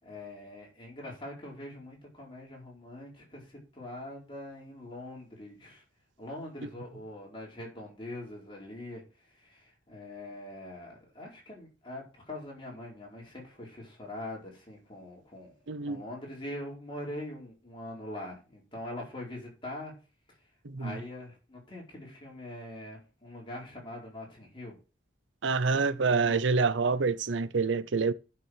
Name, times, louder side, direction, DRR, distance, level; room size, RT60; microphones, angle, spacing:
voice 1, 0.0-5.8 6.2-9.0 9.4-15.6 15.9-19.9 20.8-24.8 25.7-26.4, left 1 dB, 30° left, 4.5 m, -43 dB
voice 2, 15.7-16.0 20.6-21.0 25.4-28.1, right 4 dB, 85° right, 0.7 m, -27 dB
10.5 x 6.1 x 4.6 m
head